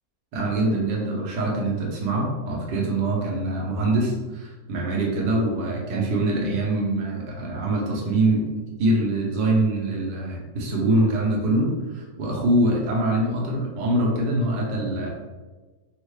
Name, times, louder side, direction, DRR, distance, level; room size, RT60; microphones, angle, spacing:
voice 1, 0.3-8.5 8.8-15.1, right 1 dB, 90° right, -2 dB, 1.5 m, -24 dB
3.6 x 2.2 x 3.1 m, 1.3 s
omnidirectional pair, 1.9 m